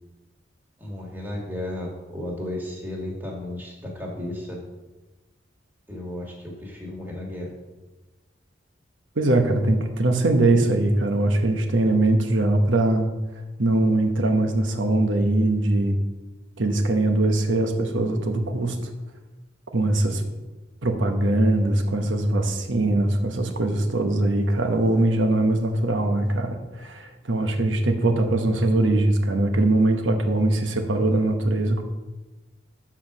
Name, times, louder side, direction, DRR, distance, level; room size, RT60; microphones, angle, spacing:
voice 1, 0.8-4.6 5.9-7.5 19.8-20.1, left 1 dB, 10° right, -2 dB, 1.7 m, -34 dB
voice 2, 9.2-13.1 13.6-16.0 16.6-18.8 19.7-20.2 20.8-31.8, right 2 dB, 85° right, 5 dB, 1.0 m, -21 dB
7.4 x 4.8 x 6.0 m, 1.1 s
head